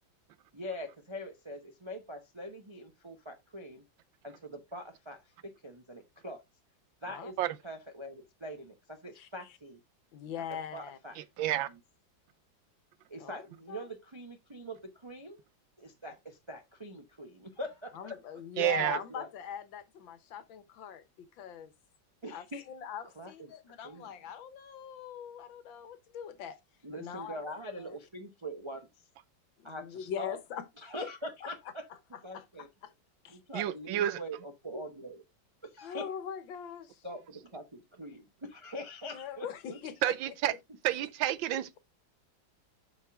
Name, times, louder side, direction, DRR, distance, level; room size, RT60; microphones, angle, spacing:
voice 1, 0.5-3.8 4.2-6.4 7.0-7.4 7.6-9.8 10.7-11.2 11.7-11.8 13.1-15.4 15.8-18.2 19.1-19.3 22.2-22.6 23.0-24.1 26.8-28.9 29.6-30.4 30.8-31.9 32.2-32.7 33.3-35.2 35.6-36.1 37.0-39.8, equal, 35° right, 0.4 m, -43 dB
voice 2, 10.1-11.0 13.2-13.4 13.7-13.9 17.9-21.7 22.3-26.6 26.9-27.9 29.6-30.7 31.0-31.1 31.4-31.5 32.3-32.9 33.2-33.6 35.8-37.0 39.1-40.3, left 8 dB, 75° left, 1.7 m, -42 dB
voice 3, 11.4-11.7 18.6-19.0 33.5-34.2 40.0-40.5 40.8-41.8, right 13 dB, 80° right, 1.4 m, -29 dB
7.4 x 5.6 x 3.5 m
omnidirectional pair, 2.1 m